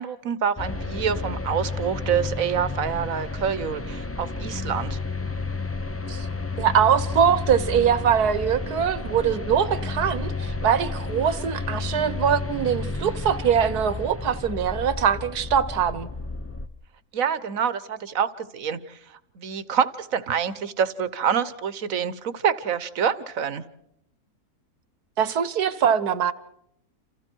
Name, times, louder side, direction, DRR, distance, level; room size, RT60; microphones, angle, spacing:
voice 1, 0.0-5.0 17.1-19.0 19.3-23.6, right 7 dB, 60° right, 15 dB, 1.4 m, -26 dB
sound 1, 0.6-16.7, left 3 dB, 15° left, 0.5 m, -31 dB
voice 2, 6.6-16.1 25.2-26.3, right 8 dB, 75° right, 15 dB, 1.6 m, -22 dB
28.0 x 28.0 x 4.6 m, 0.76 s
omnidirectional pair, 1.7 m